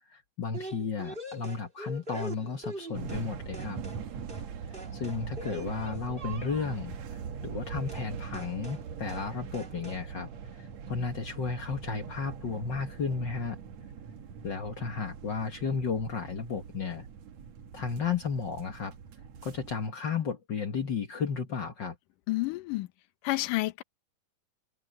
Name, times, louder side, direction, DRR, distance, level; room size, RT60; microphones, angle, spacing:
voice 1, 0.1-3.8 4.9-10.3 10.6-13.6 14.4-17.1 17.7-18.9 19.4-22.0, left 5 dB, 50° left, 1.5 m, -33 dB
sound 1, 0.5-3.3 3.5-4.0 4.3-4.5 4.7-6.8 7.9-8.1 8.3-8.8 9.1-9.3 9.5-10.0, right 1 dB, 15° right, 2.4 m, -43 dB
sound 2, 2.9-19.9, right 6 dB, 60° right, 2.4 m, -42 dB
voice 2, 22.3-22.9 23.2-23.8, left 19 dB, 75° left, 2.6 m, -29 dB
omnidirectional pair, 3.9 m